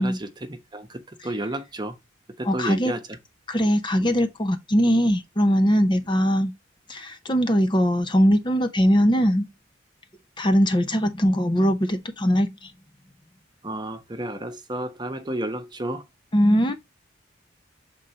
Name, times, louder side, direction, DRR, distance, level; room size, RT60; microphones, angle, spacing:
voice 1, 0.0-2.0 2.4-3.2 4.0-4.2 13.6-16.1, right 1 dB, 20° right, 1.0 m, -32 dB
voice 2, 2.5-2.9 3.5-6.5 6.9-9.5 10.4-12.7 16.3-16.7, equal, 25° left, 0.7 m, -21 dB
7.1 x 3.8 x 4.3 m
head